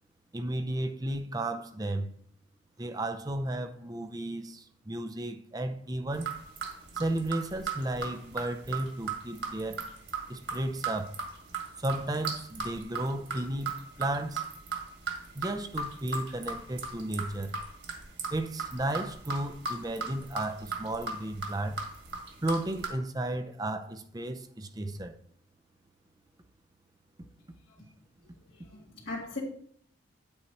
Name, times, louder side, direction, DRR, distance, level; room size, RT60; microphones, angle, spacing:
voice 1, 0.3-2.2 2.8-6.3 6.9-9.8 10.3-11.2 11.8-14.5 15.3-17.5 18.3-21.8 22.4-25.1, right 1 dB, 20° right, 0.6 m, -34 dB
sound 1, 6.1-22.9, right 4 dB, 60° right, 2.0 m, -37 dB
voice 2, 28.5-29.4, left 2 dB, 65° left, 2.0 m, -39 dB
9.5 x 8.6 x 3.0 m
head